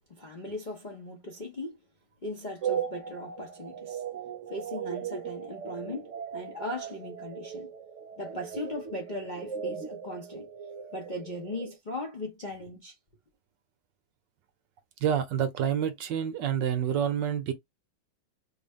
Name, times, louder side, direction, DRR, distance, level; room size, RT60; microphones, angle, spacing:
voice 1, 0.1-1.8 2.2-4.0 4.5-7.7 8.2-10.5 10.9-12.9, left 1 dB, 75° left, 0.4 m, -38 dB
sound 1, 2.6-11.8, right 8 dB, 50° right, 1.0 m, -38 dB
voice 2, 15.0-17.5, right 9 dB, 70° right, 1.3 m, -28 dB
3.9 x 2.1 x 3.5 m
omnidirectional pair, 2.3 m